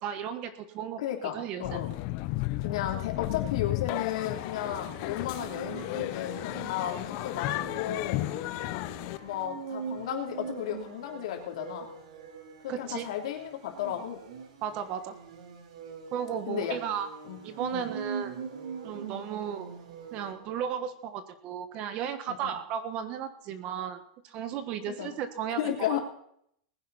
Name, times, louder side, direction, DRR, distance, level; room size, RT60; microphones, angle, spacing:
voice 1, 0.0-1.0 1.3-1.8 12.7-13.1 14.6-15.2 16.1-17.1 17.4-18.4 18.8-19.7 20.1-26.0, right 8 dB, 30° right, 10 dB, 1.3 m, -35 dB
voice 2, 1.0-1.9 2.6-8.2 9.2-11.9 12.6-14.2 16.5-16.8 17.3-17.4 17.7-17.9 22.3-22.5 24.9-25.1 25.6-26.0, left 10 dB, 60° left, 3 dB, 3.2 m, -34 dB
Paris Funicular, 1.6-9.4, left 18 dB, 35° left, 0.6 m, -34 dB
sound 1, 4.3-20.9, right 6 dB, 85° right, 3.3 m, -43 dB
20.0 x 10.5 x 4.2 m, 0.70 s
supercardioid pair, 175°, 4 cm